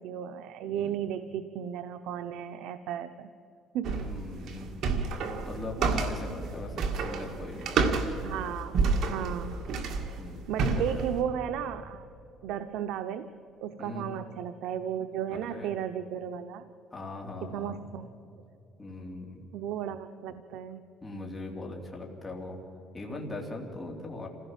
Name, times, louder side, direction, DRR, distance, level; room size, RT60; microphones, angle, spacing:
voice 1, 0.0-3.3 3.7-4.0 8.2-8.8 9.1-9.6 10.5-12.1 12.4-13.3 13.6-16.6 17.4-18.1 19.5-20.8, right 9 dB, 80° right, 9 dB, 0.7 m, -34 dB
sound 1, 3.8-11.2, right 4 dB, 60° right, 1.9 m, -30 dB
voice 2, 3.9-4.7 5.4-7.9 10.2-10.4 10.7-11.1 13.8-14.2 15.5-15.7 16.9-18.0 18.8-19.4 21.0-22.6 22.9-24.3, left 2 dB, 15° left, 0 dB, 3.0 m, -40 dB
27.0 x 16.5 x 7.4 m, 2.8 s
cardioid pair, 145°, 0 cm